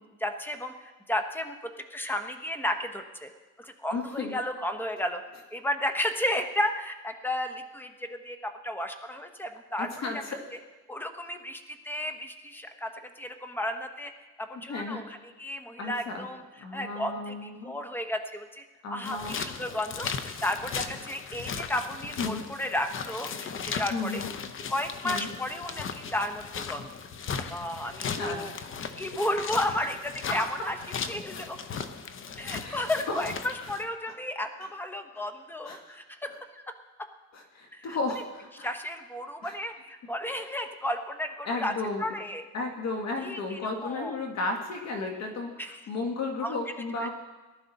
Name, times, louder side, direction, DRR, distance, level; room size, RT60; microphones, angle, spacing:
voice 1, 0.2-3.3 3.6-5.2 5.5-10.1 10.9-12.9 13.2-14.1 14.4-16.4 16.7-24.2 24.7-26.9 27.3-28.5 29.0-30.0 30.3-30.7 31.1-31.6 32.4-36.6 37.7-38.0 38.6-41.7 42.0-42.4 43.2-44.2 45.6-45.8 46.4-46.5, left 1 dB, 5° left, 6 dB, 1.1 m, -33 dB
voice 2, 3.9-4.3 9.8-10.4 14.7-15.1 15.8-16.3 16.6-17.8 18.8-19.4 22.2-22.4 23.9-24.3 25.0-25.3 28.1-28.4 29.1-29.2 32.5-32.8 33.1-33.2 33.6-33.7 34.6-34.7 35.6-36.0 37.3-38.7 39.4-39.5 41.4-42.0 42.5-47.1, left 3 dB, 55° left, 2 dB, 1.8 m, -34 dB
sound 1, 19.0-33.9, left 6 dB, 40° left, 0.9 m, -37 dB
19.0 x 11.5 x 4.2 m, 1.2 s
cardioid pair, 125°, 32 cm